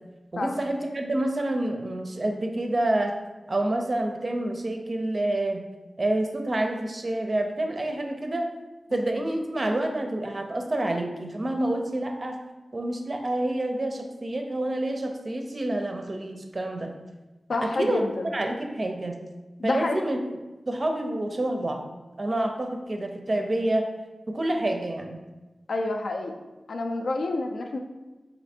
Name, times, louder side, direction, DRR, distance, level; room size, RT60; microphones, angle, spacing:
voice 1, 0.3-3.1 3.5-5.6 6.0-8.5 8.9-12.3 12.7-16.9 17.7-18.0 18.3-19.2 19.6-20.2 20.7-21.8 22.2-23.9 24.3-25.2, right 1 dB, 35° right, 3 dB, 0.5 m, -28 dB
voice 2, 17.5-18.3 19.6-20.0 25.7-26.4 26.7-27.8, left 2 dB, 75° left, 3 dB, 0.5 m, -28 dB
4.3 x 2.6 x 4.2 m, 1.1 s
wide cardioid pair, 125°, 0 cm